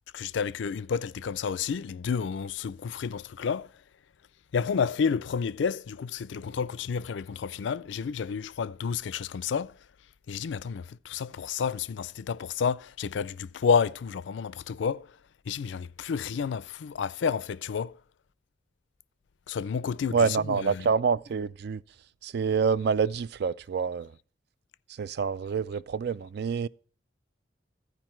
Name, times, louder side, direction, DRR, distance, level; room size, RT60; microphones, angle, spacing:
voice 1, 0.1-3.7 4.5-9.7 10.3-15.1 15.5-17.9 19.5-20.9, left 6 dB, 70° left, 0.4 m, -30 dB
voice 2, 20.1-21.8 22.2-24.1 25.0-26.7, right 5 dB, 60° right, 0.3 m, -27 dB
14.5 x 5.0 x 4.4 m
head